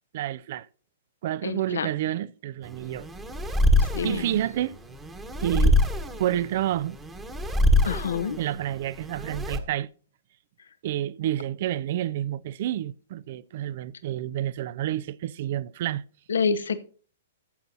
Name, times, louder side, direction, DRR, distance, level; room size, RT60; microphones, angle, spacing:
voice 1, 0.1-0.7 1.2-3.1 4.0-4.7 5.4-5.8 6.2-7.0 8.4-9.9 10.8-16.0, right 12 dB, 50° right, 0.4 m, -29 dB
voice 2, 1.4-1.9 3.8-4.3 7.8-8.4 16.3-16.8, left 6 dB, 70° left, 0.7 m, -27 dB
sound 1, 2.6-9.6, left 1 dB, 15° right, 1.2 m, -25 dB
14.0 x 7.9 x 2.7 m
figure-of-eight pair, 110°, 0 cm